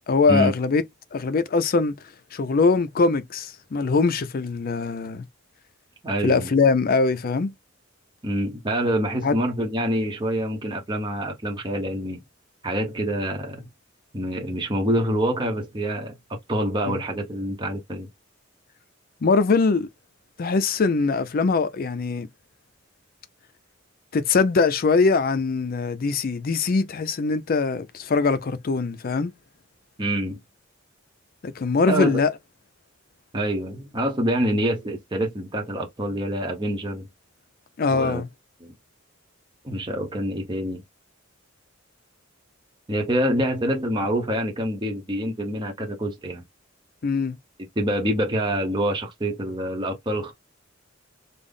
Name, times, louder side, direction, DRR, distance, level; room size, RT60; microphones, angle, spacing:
voice 1, 0.1-0.8 1.1-2.0 2.3-5.2 6.2-7.5 9.2-9.4 16.9-17.0 19.2-19.9 20.4-22.3 24.1-29.3 31.4-32.3 37.8-38.3 47.0-47.4, left 4 dB, 45° left, 0.4 m, -22 dB
voice 2, 6.0-6.5 8.2-12.2 12.6-13.7 14.1-16.1 16.5-18.1 30.0-30.4 31.9-32.2 33.3-37.1 37.9-38.2 38.6-38.7 39.6-40.8 42.9-46.4 47.8-50.3, right 1 dB, 25° right, 0.7 m, -26 dB
3.4 x 2.0 x 3.6 m
head